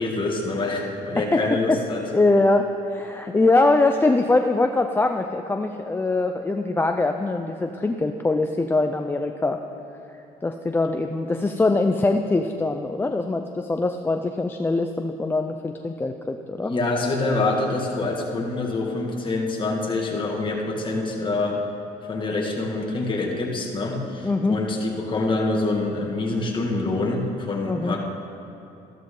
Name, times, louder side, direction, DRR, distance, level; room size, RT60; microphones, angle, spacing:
voice 1, 0.0-2.0 16.6-21.6 22.1-28.0, left 2 dB, 30° left, -1 dB, 1.9 m, -26 dB
voice 2, 1.2-1.8 2.1-9.6 10.4-16.7 24.2-24.6 27.6-28.0, left 2 dB, 15° left, 5 dB, 0.4 m, -22 dB
14.0 x 12.5 x 3.8 m, 3.0 s
cardioid pair, 110°, 17 cm